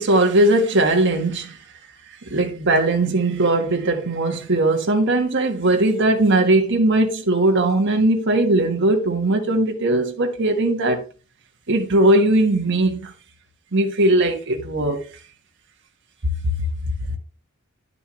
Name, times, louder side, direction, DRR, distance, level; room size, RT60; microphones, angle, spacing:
voice 1, 0.0-1.6 2.3-11.0 11.7-13.1 13.7-15.0, right 2 dB, 60° right, 1.4 m, -19 dB
10.0 x 6.8 x 3.1 m
head